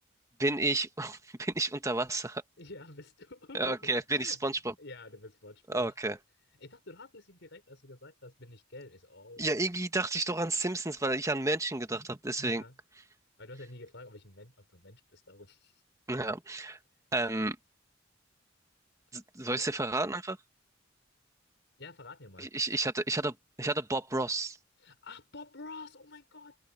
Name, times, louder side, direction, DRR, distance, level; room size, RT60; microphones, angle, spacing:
voice 1, 0.4-2.4 3.5-4.7 5.7-6.2 9.4-12.6 16.1-16.8 17.1-17.6 19.1-20.4 22.4-24.6, right 2 dB, 15° right, 1.5 m, -31 dB
voice 2, 2.6-4.4 4.8-6.0 6.6-9.6 12.4-12.8 13.4-15.8 19.6-19.9 21.8-22.5 24.8-26.6, left 2 dB, 65° left, 6.0 m, -49 dB
head